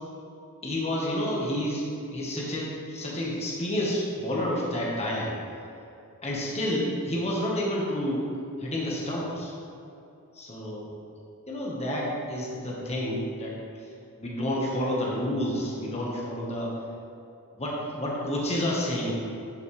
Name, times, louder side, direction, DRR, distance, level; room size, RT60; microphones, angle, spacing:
voice 1, 0.6-1.9 2.1-5.3 6.2-8.3 8.6-9.5 10.3-10.9 11.5-13.6 14.2-16.7 17.6-19.2, left 1 dB, 30° left, -4 dB, 1.4 m, -29 dB
12.0 x 6.2 x 3.3 m, 2.7 s
head